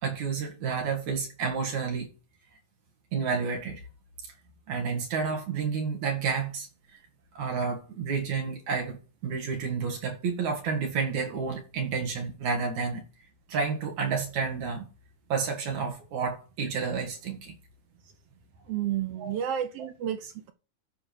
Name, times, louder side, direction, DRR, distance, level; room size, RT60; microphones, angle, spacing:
voice 1, 0.0-2.1 3.1-3.8 4.7-6.7 7.3-13.0 13.5-14.9 15.3-17.6 19.2-19.4, right 5 dB, 65° right, 3.3 m, -30 dB
voice 2, 18.7-20.5, right 10 dB, 90° right, 1.3 m, -31 dB
12.5 x 4.9 x 4.9 m
omnidirectional pair, 3.5 m